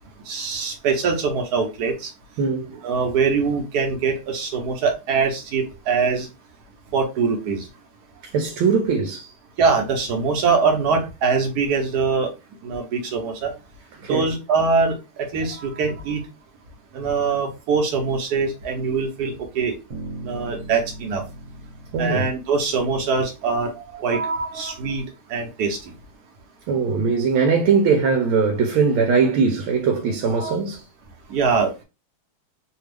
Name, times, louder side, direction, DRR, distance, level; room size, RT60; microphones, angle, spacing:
voice 1, 0.2-2.1 2.8-6.3 6.9-7.7 9.6-12.3 12.6-13.5 14.1-16.2 16.9-19.7 20.2-21.2 22.0-25.0 25.3-25.9 30.4-30.5 31.3-31.8, right 5 dB, 60° right, 1.2 m, -23 dB
voice 2, 2.4-2.9 8.2-9.3 14.0-14.2 21.9-22.2 26.7-30.9, right 5 dB, 80° right, 1.5 m, -20 dB
sound 1, 19.9-23.9, right 1 dB, 35° right, 1.1 m, -39 dB
3.4 x 2.3 x 3.3 m
omnidirectional pair, 2.3 m